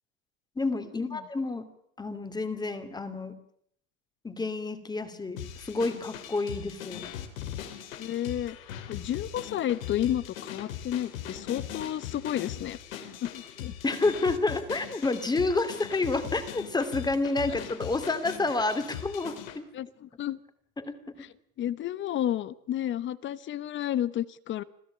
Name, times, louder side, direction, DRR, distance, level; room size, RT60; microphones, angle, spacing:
voice 1, 0.6-1.7 2.0-3.3 4.2-7.0 13.8-19.6 20.8-21.3, left 3 dB, 10° left, 10 dB, 2.6 m, -29 dB
sound 1, 5.4-19.6, left 10 dB, 85° left, 3.7 m, -40 dB
voice 2, 8.0-8.6 8.9-13.7 17.5-17.6 19.7-20.4 21.6-24.6, left 11 dB, 30° left, 17 dB, 1.0 m, -31 dB
26.5 x 15.5 x 8.7 m, 0.69 s
supercardioid pair, 135°, 39 cm